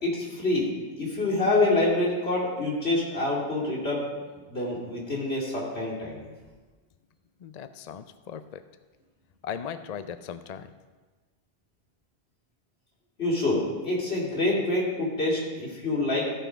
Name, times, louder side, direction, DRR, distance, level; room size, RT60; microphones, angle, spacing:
voice 1, 0.0-4.1 4.5-6.2 13.2-16.3, left 2 dB, 85° left, -5 dB, 3.0 m, -26 dB
voice 2, 7.4-8.6 9.4-10.7, left 8 dB, 50° left, 10 dB, 0.5 m, -38 dB
14.5 x 5.5 x 5.0 m, 1.3 s
omnidirectional pair, 1.1 m